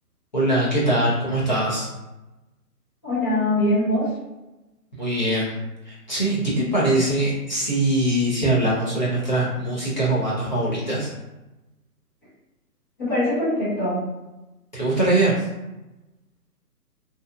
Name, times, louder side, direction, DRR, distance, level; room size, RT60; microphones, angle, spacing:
voice 1, 0.3-1.9 5.0-5.5 5.9-11.1 14.7-15.3, right 1 dB, 30° left, -8 dB, 0.5 m, -22 dB
voice 2, 3.0-4.0 13.0-14.0, left 1 dB, 15° left, -12 dB, 0.9 m, -22 dB
2.6 x 2.0 x 2.3 m, 1.0 s
figure-of-eight pair, 145°, 48 cm